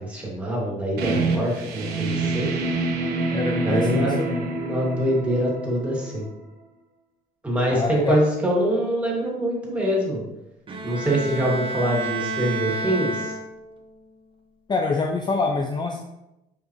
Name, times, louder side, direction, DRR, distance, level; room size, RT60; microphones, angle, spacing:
voice 1, 0.0-2.5 3.6-6.3 7.4-10.2 10.8-13.3, right 1 dB, 5° right, -4 dB, 2.4 m, -24 dB
sound 1, 1.0-6.4, right 3 dB, 75° right, 1.4 m, -27 dB
voice 2, 3.3-4.5 7.7-8.2 14.7-16.0, left 4 dB, 25° left, 4 dB, 0.5 m, -25 dB
Bowed string instrument, 10.7-13.8, right 2 dB, 30° right, 1.0 m, -30 dB
7.4 x 5.2 x 3.2 m, 0.92 s
cardioid pair, 110°, 17 cm